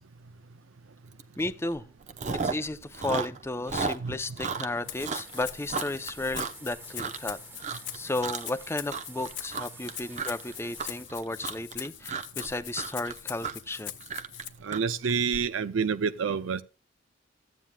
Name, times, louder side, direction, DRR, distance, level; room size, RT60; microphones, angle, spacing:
Chewing mastication, 1.2-1.4 1.7-2.7 2.9-7.3 7.6-8.0 8.2-8.6 8.9-15.4, right 4 dB, 40° right, 0.8 m, -34 dB
voice 1, 1.4-1.9 2.4-13.9, left 2 dB, 15° left, 0.6 m, -34 dB
sound 1, 4.4-11.0, right 2 dB, 10° right, 1.1 m, -49 dB
Rattle (instrument), 4.9-14.5, left 12 dB, 65° left, 1.0 m, -42 dB
voice 2, 14.6-16.6, right 6 dB, 85° right, 0.5 m, -28 dB
14.5 x 9.2 x 2.3 m
head